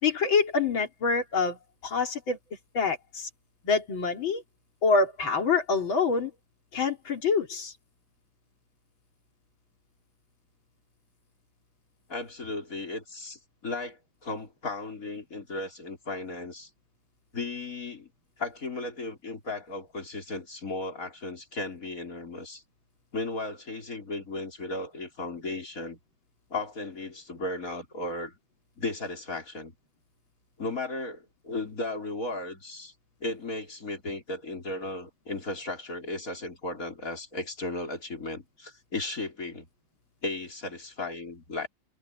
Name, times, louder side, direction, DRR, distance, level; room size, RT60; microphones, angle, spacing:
voice 1, 0.0-1.6 1.8-2.4 2.7-3.3 3.6-4.4 4.8-6.3 6.7-7.7, left 4 dB, 80° left, 3.9 m, -26 dB
voice 2, 12.1-16.7 17.3-18.1 18.4-22.6 23.1-26.0 26.5-28.4 28.8-29.7 30.6-32.9 33.2-39.7 40.2-41.7, left 2 dB, 40° left, 4.7 m, -35 dB
omnidirectional pair, 2.1 m